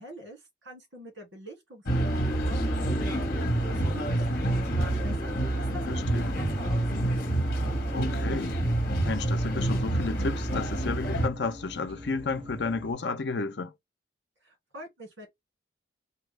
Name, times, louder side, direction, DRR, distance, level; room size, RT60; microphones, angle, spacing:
voice 1, 0.0-7.1 14.4-15.3, equal, 85° right, 2.1 m, -46 dB
sound 1, 1.9-11.3, right 1 dB, 50° left, 1.2 m, -27 dB
sound 2, 2.6-12.9, left 1 dB, 25° right, 1.0 m, -44 dB
voice 2, 5.9-6.4 7.9-8.6 9.1-13.7, left 4 dB, 65° left, 0.6 m, -32 dB
4.4 x 2.3 x 3.3 m
head